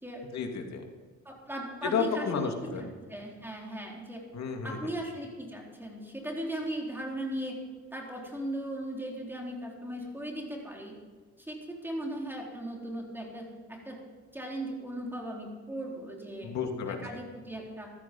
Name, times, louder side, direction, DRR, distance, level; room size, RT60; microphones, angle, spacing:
voice 1, 0.3-0.8 1.8-2.8 4.3-4.8 16.4-17.0, left 6 dB, 65° left, 3 dB, 2.5 m, -31 dB
voice 2, 1.2-4.2 4.6-7.6 7.9-10.9 11.4-14.0 14.3-16.5 16.9-17.9, right 1 dB, 5° right, -1 dB, 4.2 m, -38 dB
15.0 x 13.0 x 5.5 m, 1.5 s
cardioid pair, 90°, 30 cm